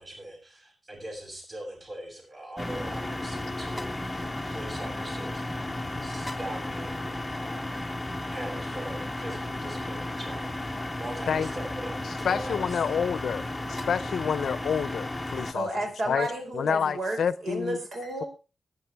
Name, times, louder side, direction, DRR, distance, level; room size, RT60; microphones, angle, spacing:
voice 1, 0.0-5.7 6.0-7.8 8.3-11.9 12.2-12.8, right 1 dB, 30° right, 7.2 m, -41 dB
sound 1, 2.6-15.5, left 1 dB, 10° left, 0.8 m, -34 dB
voice 2, 12.2-15.7 16.1-16.3 16.5-17.8, left 7 dB, 80° left, 0.6 m, -28 dB
voice 3, 15.5-18.3, right 1 dB, 65° right, 5.0 m, -32 dB
19.5 x 9.9 x 3.5 m
wide cardioid pair, 180°, 0 cm